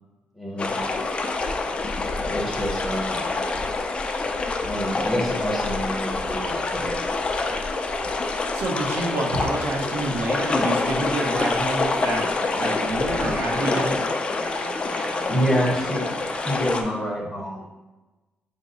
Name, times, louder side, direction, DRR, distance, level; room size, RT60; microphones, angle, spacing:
voice 1, 0.4-0.9 2.1-3.4 4.6-7.0 15.2-16.1 16.5-17.7, equal, 5° right, -3 dB, 0.7 m, -27 dB
sound 1, 0.6-16.8, left 3 dB, 30° left, 0.3 m, -26 dB
voice 2, 8.5-14.0, right 2 dB, 80° right, 0 dB, 0.8 m, -28 dB
voice 3, 13.1-13.9 14.3-16.6, right 4 dB, 40° right, 7 dB, 0.4 m, -40 dB
5.1 x 2.0 x 3.8 m, 1.1 s
cardioid pair, 155°, 4 cm